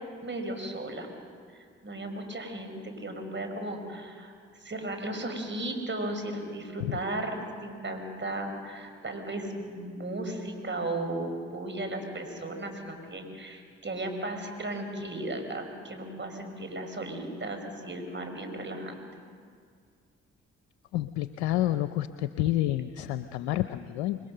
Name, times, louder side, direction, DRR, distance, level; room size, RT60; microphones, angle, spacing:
voice 1, 0.2-1.1 1.8-4.3 4.6-19.0, right 1 dB, 35° right, 5 dB, 5.8 m, -35 dB
voice 2, 20.9-24.2, left 14 dB, 85° left, 12 dB, 0.6 m, -29 dB
28.0 x 22.0 x 6.7 m, 2.1 s
hypercardioid pair, 40°, 33 cm